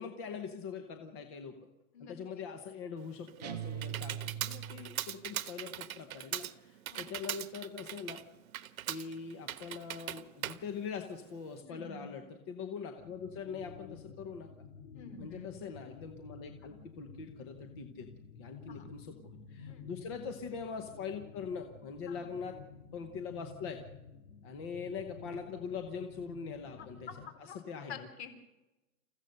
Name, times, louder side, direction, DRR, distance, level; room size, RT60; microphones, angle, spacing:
voice 1, 0.0-1.6 2.0-8.2 8.9-14.5 15.2-18.1 18.4-22.6 22.9-23.8 24.4-27.1 27.7-28.1, left 6 dB, 20° left, 5 dB, 0.9 m, -42 dB
voice 2, 1.9-2.5 6.9-7.2 11.6-12.1 14.9-15.6 18.7-18.9 19.7-19.9 22.1-22.3 26.8-26.9 27.5-27.6 27.9-28.3, left 6 dB, 50° left, 8 dB, 3.8 m, -49 dB
Computer keyboard, 3.0-11.6, right 11 dB, 80° right, 1.2 m, -41 dB
sound 1, 3.4-5.1, right 9 dB, 30° right, 0.8 m, -41 dB
sound 2, 13.0-27.3, left 5 dB, 80° left, 2.2 m, -52 dB
28.0 x 15.5 x 6.6 m, 1.0 s
supercardioid pair, 180°, 42 cm